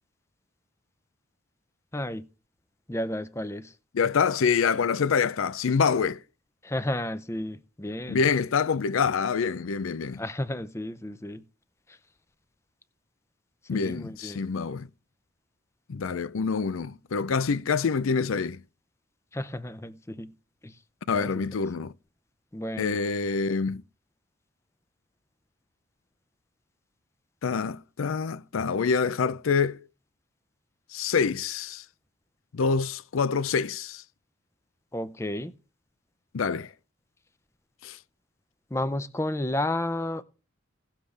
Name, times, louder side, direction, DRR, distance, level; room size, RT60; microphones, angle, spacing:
voice 1, 1.9-2.2 2.9-3.7 6.6-8.2 10.2-11.4 13.7-14.4 19.3-20.3 20.6-20.7 21.1-21.3 22.5-23.0 34.9-35.5 38.7-40.2, left 1 dB, 15° left, 0.5 m, -32 dB
voice 2, 3.9-6.2 8.1-10.2 13.7-14.9 15.9-18.6 21.1-21.9 22.8-23.8 27.4-29.8 30.9-31.8 32.5-34.0 36.3-36.7 37.8-38.0, left 5 dB, 85° left, 0.5 m, -26 dB
17.0 x 7.4 x 3.3 m
head